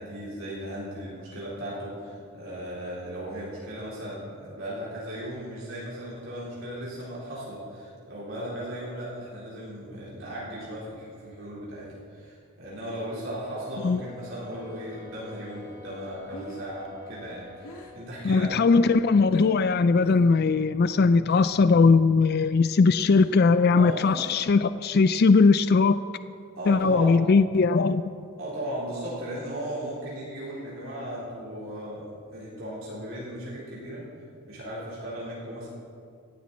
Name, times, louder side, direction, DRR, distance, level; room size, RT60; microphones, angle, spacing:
voice 1, 0.0-18.8 23.7-24.0 26.5-27.2 28.4-34.0 34.4-35.7, equal, 65° right, -7 dB, 4.2 m, -36 dB
sound 1, 13.4-18.2, left 5 dB, 15° right, 3.3 m, -48 dB
Breathing, 16.3-19.6 20.0-20.5 20.7-21.8 22.1-24.7, equal, 85° left, 1.5 m, -47 dB
voice 2, 18.2-26.0 26.7-28.0, left 4 dB, 45° left, 13 dB, 0.3 m, -20 dB
17.5 x 15.0 x 4.3 m, 2.3 s
head